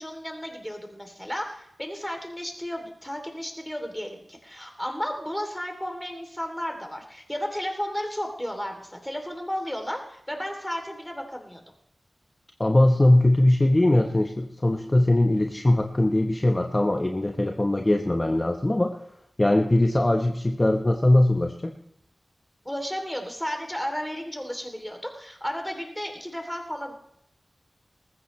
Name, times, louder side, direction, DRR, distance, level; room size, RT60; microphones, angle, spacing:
voice 1, 0.0-11.6 22.6-26.9, equal, 10° left, 4 dB, 3.0 m, -33 dB
voice 2, 12.6-19.0 19.4-21.7, left 1 dB, 30° left, 3 dB, 1.1 m, -21 dB
19.5 x 15.0 x 3.2 m, 0.73 s
wide cardioid pair, 60°, 0 cm